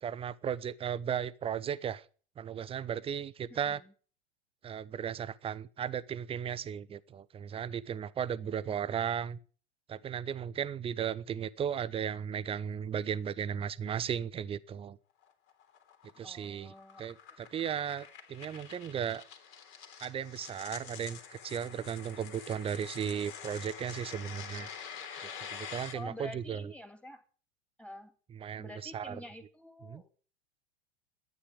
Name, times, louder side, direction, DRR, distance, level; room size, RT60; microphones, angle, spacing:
voice 1, 0.0-2.0 2.4-3.8 4.6-9.4 9.9-15.0 16.2-19.2 20.0-24.7 25.2-26.7 28.3-29.2 29.9-30.0, right 8 dB, 15° right, 17 dB, 0.8 m, -36 dB
voice 2, 3.5-3.9 8.4-8.6 8.8-9.2 16.2-17.1 25.9-27.2 27.8-28.1 28.6-30.1, left 1 dB, 5° left, 8 dB, 2.6 m, -48 dB
sound 1, 15.2-25.9, left 7 dB, 40° left, 3.2 m, -47 dB
13.0 x 9.7 x 8.2 m, 0.40 s
figure-of-eight pair, 90°, 33 cm